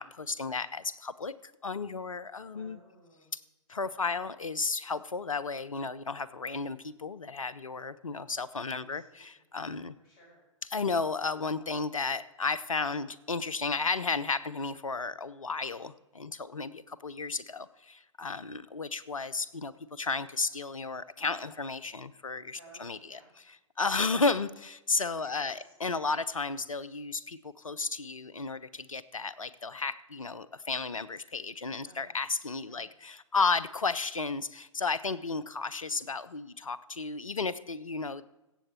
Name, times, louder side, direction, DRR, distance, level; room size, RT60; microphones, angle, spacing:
voice 1, 0.0-2.8 3.7-10.0 10.7-23.2 23.8-38.2, left 4 dB, 85° left, 17 dB, 0.5 m, -33 dB
voice 2, 2.5-3.3 3.8-4.2 8.8-9.4 10.0-10.4 22.6-23.3 24.3-24.5 25.2-26.2 31.8-32.2 32.6-32.9, right 1 dB, 35° left, -2 dB, 5.0 m, -58 dB
16.0 x 7.6 x 4.3 m, 0.99 s
figure-of-eight pair, 110°, 17 cm